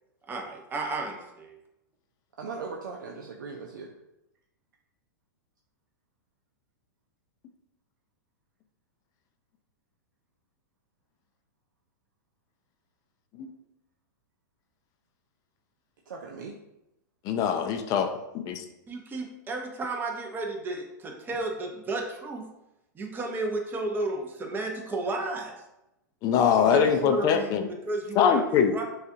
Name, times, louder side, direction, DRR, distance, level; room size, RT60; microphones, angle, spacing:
voice 1, 0.3-1.6 18.9-22.5 22.9-25.6 26.7-28.8, right 2 dB, 20° right, 2 dB, 0.7 m, -33 dB
voice 2, 2.4-3.9 16.1-16.6 26.8-26.9, right 4 dB, 80° right, 0 dB, 0.5 m, -38 dB
voice 3, 17.2-18.1 18.3-18.6 26.2-27.7 28.2-28.7, left 7 dB, 35° left, 6 dB, 0.5 m, -23 dB
6.5 x 2.4 x 2.7 m, 0.90 s
hypercardioid pair, 120°, 11 cm